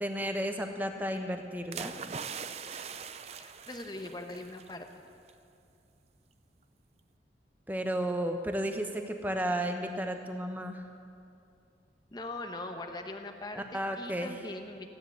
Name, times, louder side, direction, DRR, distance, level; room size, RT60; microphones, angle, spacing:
voice 1, 0.0-2.0 7.7-10.8 13.5-14.3, right 1 dB, 10° right, 5 dB, 1.0 m, -33 dB
sound 1, 1.7-4.7 5.1-5.3, right 6 dB, 35° right, 0.5 m, -41 dB
voice 2, 3.4-4.9 12.1-14.9, left 2 dB, 25° left, 5 dB, 0.9 m, -41 dB
15.5 x 10.0 x 8.0 m, 2.5 s
head